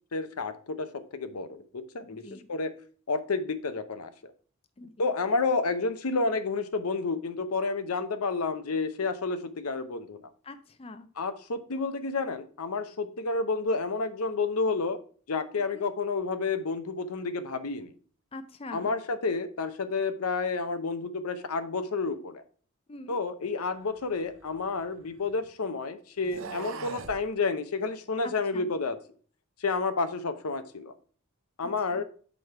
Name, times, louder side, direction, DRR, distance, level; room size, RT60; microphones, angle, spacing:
voice 1, 0.1-0.9 1.1-2.2 2.5-2.7 3.1-4.1 5.0-10.2 11.2-15.0 15.3-17.9 18.7-22.4 23.1-29.0 29.6-30.9 31.6-32.0, left 4 dB, 85° left, 10 dB, 0.7 m, -30 dB
voice 2, 2.0-2.5 4.8-4.9 10.4-11.1 15.7-15.9 18.3-18.9 22.9-23.2 28.2-28.7 31.6-32.0, left 2 dB, 25° left, 9 dB, 0.5 m, -44 dB
sound 1, 24.0-25.4 26.2-27.2, right 5 dB, 60° right, 0.6 m, -42 dB
6.3 x 5.1 x 4.4 m, 0.43 s
head